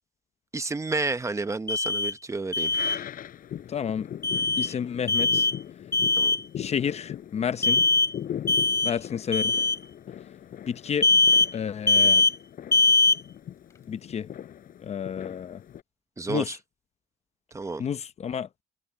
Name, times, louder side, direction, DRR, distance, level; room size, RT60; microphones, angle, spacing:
voice 1, 0.5-2.7 6.2-6.4 16.2-16.6 17.5-17.9, right 3 dB, 15° right, 1.0 m, -30 dB
Alarm, 1.7-2.1 2.5-3.0 4.2-4.7 5.1-5.6 5.9-6.4 7.6-8.1 8.5-8.9 9.3-9.8 11.0-11.5 11.9-12.3 12.7-13.2, left 3 dB, 15° left, 0.4 m, -21 dB
sound 1, 2.6-15.8, left 10 dB, 55° left, 6.1 m, -40 dB
voice 2, 3.7-4.1 4.6-5.5 6.6-7.8 8.8-9.5 10.7-11.1 11.5-12.2 13.9-14.3 14.8-15.6 16.3-16.5 17.8-18.5, left 7 dB, 40° left, 0.8 m, -30 dB
cardioid pair, 110°, 17 cm